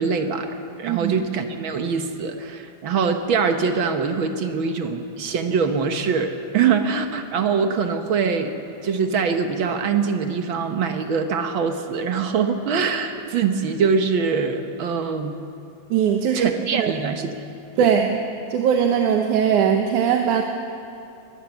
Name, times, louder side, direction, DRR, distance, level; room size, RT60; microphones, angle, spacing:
voice 1, 0.0-8.5 8.8-15.4 16.3-17.4 17.8-17.9, right 5 dB, 60° right, 6 dB, 1.3 m, -23 dB
voice 2, 0.8-1.2 15.9-16.9 17.8-18.2 18.5-20.4, right 8 dB, 85° right, 3 dB, 2.5 m, -20 dB
22.0 x 18.0 x 7.2 m, 2.7 s
omnidirectional pair, 3.5 m